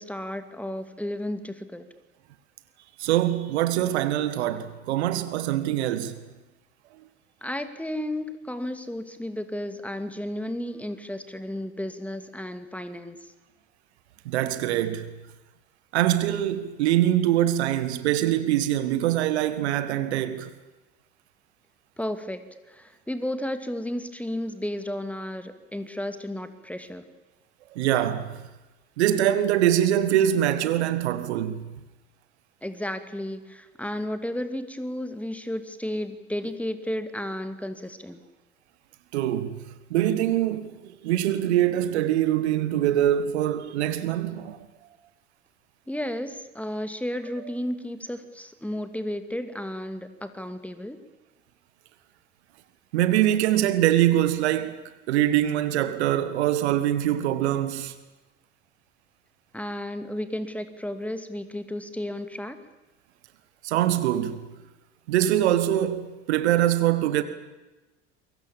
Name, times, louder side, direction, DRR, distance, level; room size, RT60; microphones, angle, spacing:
voice 1, 0.0-1.9 7.4-13.2 22.0-22.4 22.7-27.0 32.6-38.2 45.9-51.0 59.5-62.6, left 1 dB, 5° left, 2.5 m, -33 dB
voice 2, 3.0-6.1 14.3-15.1 15.9-20.5 27.7-28.4 29.0-31.7 39.1-39.6 39.9-44.6 52.9-54.8 55.1-57.9 63.6-64.5 65.1-67.2, right 12 dB, 65° right, 1.8 m, -23 dB
28.5 x 23.5 x 7.4 m
figure-of-eight pair, 65°, 35 cm